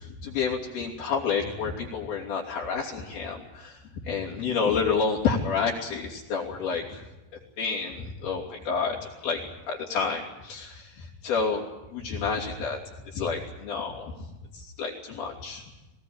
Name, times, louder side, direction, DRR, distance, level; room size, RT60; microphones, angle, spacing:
voice 1, 0.0-3.7 4.1-7.0 7.6-9.0 9.2-9.4 9.7-10.9 11.2-11.6 11.9-12.8 13.1-14.1 14.8-15.6, left 5 dB, 65° left, -3 dB, 4.8 m, -29 dB
23.0 x 18.0 x 9.7 m, 1.0 s
omnidirectional pair, 4.7 m